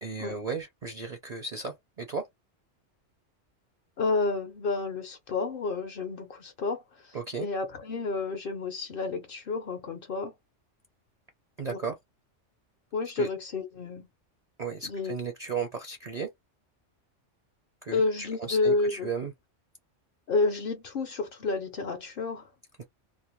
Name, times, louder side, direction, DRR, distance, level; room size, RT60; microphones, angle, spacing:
voice 1, 0.0-2.2 7.1-7.5 11.6-12.0 13.2-13.3 14.6-16.3 17.8-19.3, right 5 dB, 50° right, 0.5 m, -35 dB
voice 2, 4.0-10.3 12.9-14.1 14.8-15.1 17.9-19.1 20.3-22.5, left 3 dB, 55° left, 0.7 m, -30 dB
2.5 x 2.0 x 2.9 m
omnidirectional pair, 1.3 m